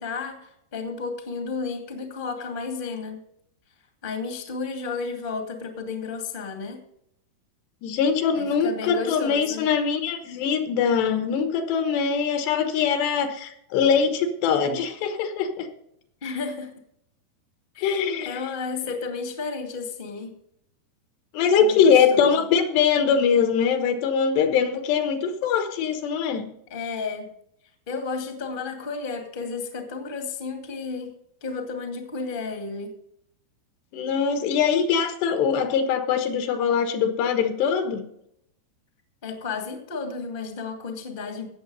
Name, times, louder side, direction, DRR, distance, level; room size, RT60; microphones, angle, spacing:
voice 1, 0.0-3.2 4.0-6.8 8.4-9.6 16.2-16.7 17.7-20.3 21.6-22.4 26.7-27.3 27.9-31.1 31.4-32.9 39.2-41.5, left 4 dB, 25° left, 4 dB, 1.0 m, -32 dB
voice 2, 7.8-15.7 17.8-18.4 21.3-26.5 33.9-38.0, left 6 dB, 80° left, 7 dB, 3.4 m, -22 dB
17.0 x 7.1 x 5.5 m, 0.73 s
omnidirectional pair, 4.8 m